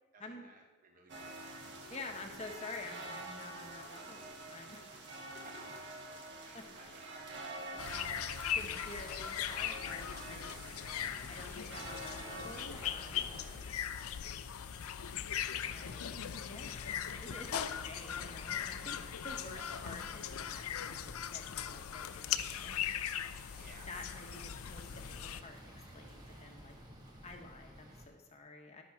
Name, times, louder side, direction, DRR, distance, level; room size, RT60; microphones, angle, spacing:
voice 1, 0.1-1.6 4.9-5.0 5.3-5.7 6.4-8.4 13.4-13.7 15.6-16.0 17.6-17.9 19.6-19.8 23.2-23.9 27.8-28.0, right 3 dB, 35° right, 2 dB, 0.9 m, -59 dB
sound 1, 1.1-12.7, right 2 dB, 50° right, 1.5 m, -47 dB
voice 2, 1.9-4.2 4.5-5.0 5.3-5.4 6.1-6.3 6.5-6.7 7.7-8.3 8.5-10.5 11.3-13.4 15.6-22.8 23.9-26.8 27.2-28.8, left 2 dB, 30° left, 3 dB, 1.2 m, -49 dB
sound 2, 7.8-25.4, left 9 dB, 80° left, 0.5 m, -39 dB
sound 3, 12.7-28.1, equal, 20° right, 1.7 m, -55 dB
12.0 x 6.2 x 6.0 m, 1.2 s
head